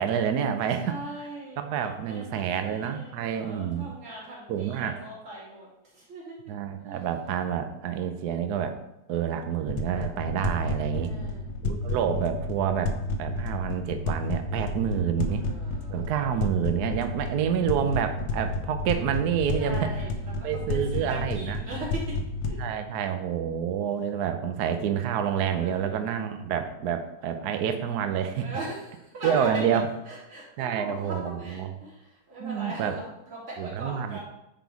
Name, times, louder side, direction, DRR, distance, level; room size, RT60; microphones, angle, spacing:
voice 1, 0.0-0.9 1.6-3.9 4.5-5.0 6.5-8.8 9.1-11.1 11.6-15.4 15.9-19.9 20.4-21.6 22.6-28.5 29.2-29.9 30.6-31.7 32.4-33.0 33.6-34.2, right 8 dB, 65° right, 7 dB, 1.0 m, -28 dB
voice 2, 0.8-6.5 6.9-7.0 9.2-9.9 11.0-11.5 15.2-16.2 19.6-22.2 22.5-22.7 23.1-23.2 25.5-26.1 28.3-29.7 30.1-34.2, right 1 dB, 85° right, -8 dB, 4.4 m, -40 dB
sound 1, 9.7-22.6, left 2 dB, 70° left, 1.5 m, -31 dB
10.5 x 4.1 x 4.7 m, 0.87 s
omnidirectional pair, 2.3 m